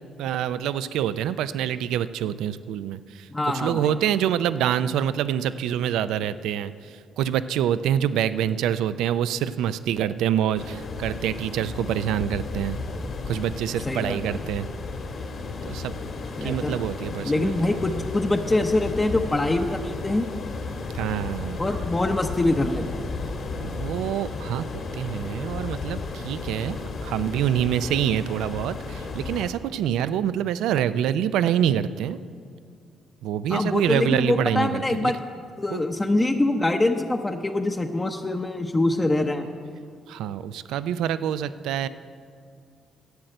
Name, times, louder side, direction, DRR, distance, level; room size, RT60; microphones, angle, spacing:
voice 1, 0.2-12.8 13.3-14.7 15.6-15.9 16.4-17.8 20.9-21.7 23.6-24.7 24.9-32.2 33.2-35.1 35.7-35.8 40.1-41.9, right 10 dB, 90° right, 14 dB, 0.4 m, -26 dB
voice 2, 3.3-3.9 13.8-14.4 16.4-16.8 17.2-20.3 21.6-23.0 33.5-35.2 35.6-39.5, left 2 dB, 20° left, 3 dB, 0.6 m, -24 dB
sound 1, 10.6-29.5, left 3 dB, 55° left, 1.6 m, -34 dB
11.5 x 7.9 x 7.7 m, 2.3 s
cardioid pair, 90°, 0 cm